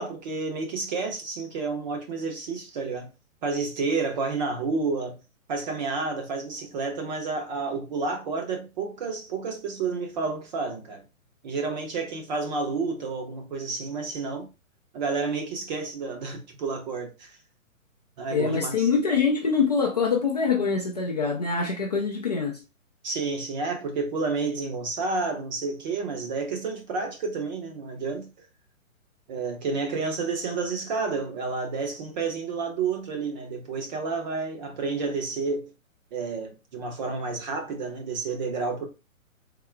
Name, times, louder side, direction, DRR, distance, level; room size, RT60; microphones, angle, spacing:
voice 1, 0.0-3.1 3.4-5.2 5.5-11.0 11.4-14.5 14.9-17.4 18.2-18.9 23.0-28.3 29.3-35.7 36.1-38.9, right 4 dB, 30° right, 0.8 m, -30 dB
voice 2, 18.3-22.6, left 5 dB, 30° left, 0.4 m, -24 dB
3.7 x 2.0 x 4.4 m
hypercardioid pair, 155°, 42 cm